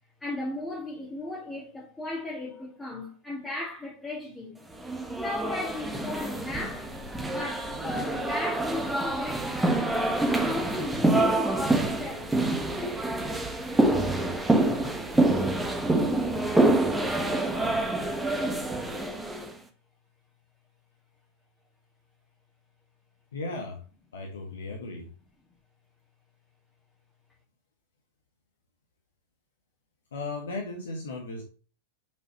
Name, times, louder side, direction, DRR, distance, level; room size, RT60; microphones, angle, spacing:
voice 1, 0.2-4.6 5.2-6.9 7.2-9.5 10.2-12.3 14.8-15.0, left 2 dB, 10° left, 2.1 m, -36 dB
sound 1, 4.8-19.5, right 2 dB, 5° right, 1.3 m, -26 dB
voice 2, 23.3-23.8 24.1-25.1 30.1-31.4, left 2 dB, 65° left, 1.5 m, -36 dB
7.4 x 5.4 x 3.1 m
figure-of-eight pair, 90°, 0 cm